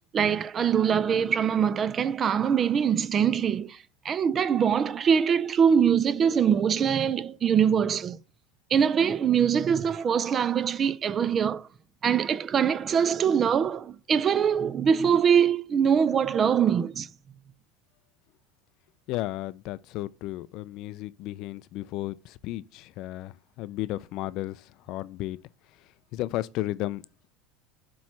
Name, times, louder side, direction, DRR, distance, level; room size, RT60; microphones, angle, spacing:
voice 1, 0.1-3.8 4.0-8.2 8.7-11.7 12.0-17.1, right 7 dB, 35° right, 0.5 m, -23 dB
voice 2, 19.1-25.4 26.1-27.0, left 16 dB, 60° left, 0.4 m, -34 dB
7.4 x 3.1 x 5.7 m
supercardioid pair, 100°, 0 cm